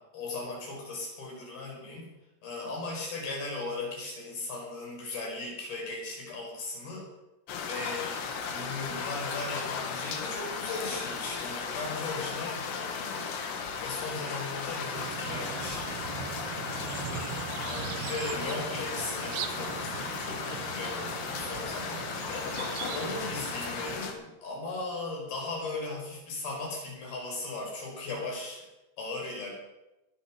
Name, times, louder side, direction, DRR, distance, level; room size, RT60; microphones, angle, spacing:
voice 1, 0.1-2.1 2.4-7.1 7.6-8.2 8.4-13.4 13.8-16.1 17.7-22.6 22.9-28.7 29.0-29.5, left 3 dB, 65° left, -1 dB, 6.4 m, -37 dB
sound 1, 7.5-24.1, left 5 dB, 80° left, 3.6 m, -36 dB
sound 2, 15.0-24.0, right 9 dB, 75° right, 2.6 m, -40 dB
20.5 x 8.4 x 6.1 m, 0.98 s
omnidirectional pair, 4.8 m